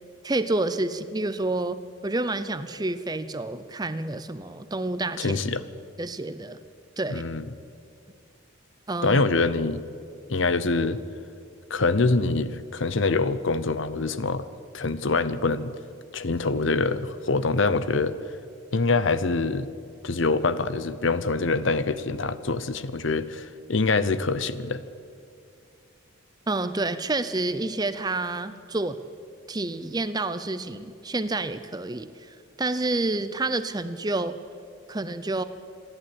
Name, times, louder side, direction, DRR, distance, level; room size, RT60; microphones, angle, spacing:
voice 1, 0.2-1.8 2.0-5.4 6.0-6.6 7.0-7.2 8.9-9.2 26.5-29.0 29.5-34.4 34.9-35.4, right 2 dB, 20° right, 12 dB, 0.6 m, -29 dB
voice 2, 5.2-5.6 7.1-7.4 9.0-9.8 10.3-11.0 11.7-14.5 14.7-15.7 16.1-18.1 18.7-19.7 20.0-24.8, left 3 dB, 60° left, 14 dB, 0.8 m, -25 dB
26.5 x 11.5 x 8.7 m, 2.4 s
head